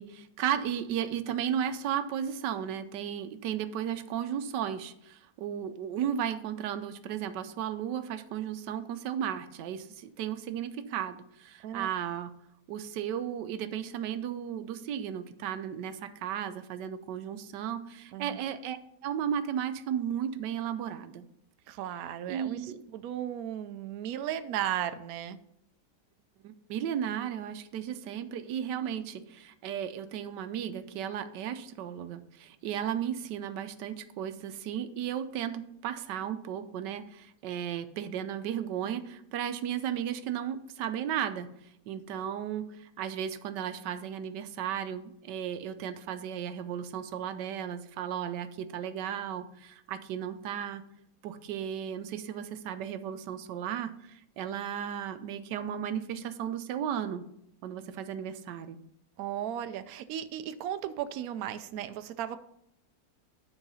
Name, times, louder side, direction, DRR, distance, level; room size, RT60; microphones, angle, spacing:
voice 1, 0.0-12.3 12.7-18.8 19.0-21.2 22.3-22.8 26.4-41.5 41.9-50.8 51.2-57.2 57.6-58.8, right 9 dB, 85° right, 11 dB, 1.3 m, -35 dB
voice 2, 21.7-25.4 59.2-62.4, right 10 dB, 70° right, 11 dB, 1.0 m, -35 dB
9.8 x 4.7 x 5.5 m, 0.76 s
omnidirectional pair, 1.8 m